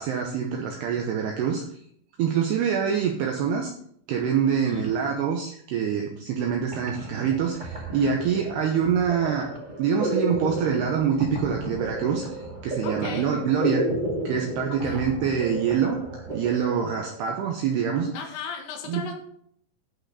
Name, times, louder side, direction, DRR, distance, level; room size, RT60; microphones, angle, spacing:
voice 1, 0.0-1.6 2.2-3.7 4.1-9.5 9.8-13.9 14.2-16.0 16.3-18.2 18.9-19.0, right 7 dB, 75° right, 1 dB, 2.7 m, -25 dB
voice 2, 4.5-5.0 12.8-13.3 14.7-15.0 18.1-19.2, left 6 dB, 75° left, 2 dB, 3.9 m, -37 dB
sound 1, 6.7-17.3, right 1 dB, 45° right, 0.5 m, -32 dB
14.5 x 5.8 x 4.0 m, 0.65 s
omnidirectional pair, 5.4 m